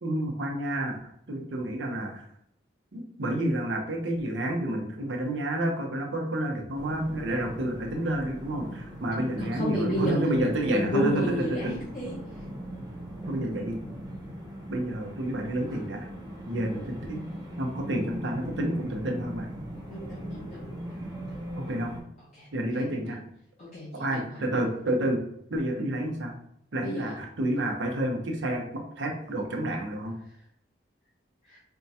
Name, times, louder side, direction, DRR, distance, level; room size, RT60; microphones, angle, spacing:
voice 1, 0.0-1.0 1.3-2.2 2.9-11.2 11.5-11.7 13.3-13.8 14.7-16.1 16.5-17.2 17.6-19.5 21.6-21.9 22.5-23.2 23.9-25.2 25.5-26.3 26.7-30.2, right 1 dB, 85° right, 2 dB, 0.8 m, -29 dB
sound 1, 6.7-22.0, right 1 dB, 20° right, 0.8 m, -40 dB
voice 2, 9.4-12.2 14.2-14.3 19.9-21.4 22.2-23.2 23.6-24.6 26.8-27.2 31.5-31.6, equal, 40° left, -8 dB, 0.8 m, -33 dB
4.4 x 2.2 x 2.7 m, 0.73 s
head